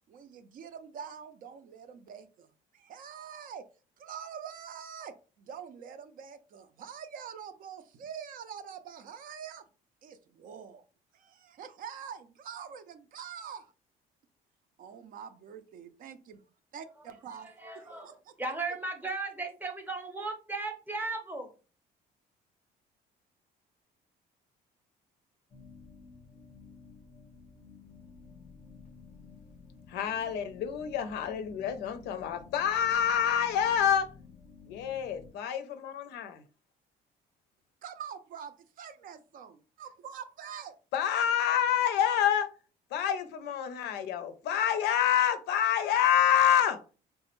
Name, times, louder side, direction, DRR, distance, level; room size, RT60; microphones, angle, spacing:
voice 1, 0.1-3.7 4.0-9.7 10.0-10.8 11.1-13.7 14.8-16.4 16.7-18.3 37.8-40.8, right 7 dB, 55° right, 10 dB, 0.4 m, -45 dB
voice 2, 17.6-18.1 18.4-21.5, right 3 dB, 10° right, 4 dB, 0.7 m, -36 dB
sound 1, 25.5-35.3, left 5 dB, 30° left, 0.5 m, -53 dB
voice 3, 29.9-34.1 34.6-36.4 40.9-42.5 42.9-46.8, left 9 dB, 85° left, 9 dB, 0.5 m, -27 dB
3.4 x 2.0 x 2.9 m, 0.35 s
cardioid pair, 110°, 17 cm